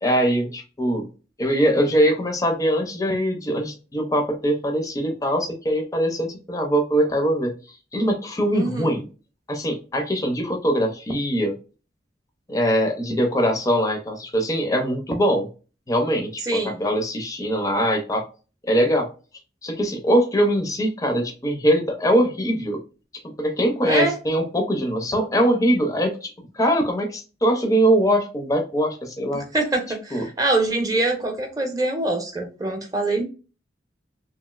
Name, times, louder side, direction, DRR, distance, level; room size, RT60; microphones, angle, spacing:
voice 1, 0.0-1.1 1.4-9.1 9.5-11.6 12.5-15.5 15.9-18.3 18.6-19.1 19.6-22.8 23.2-29.5 30.1-30.3, equal, 20° left, 4 dB, 0.5 m, -22 dB
voice 2, 8.5-8.9 16.5-16.8 23.9-24.1 29.5-33.2, right 2 dB, 20° right, 4 dB, 0.6 m, -24 dB
3.0 x 2.4 x 2.3 m, 0.34 s
head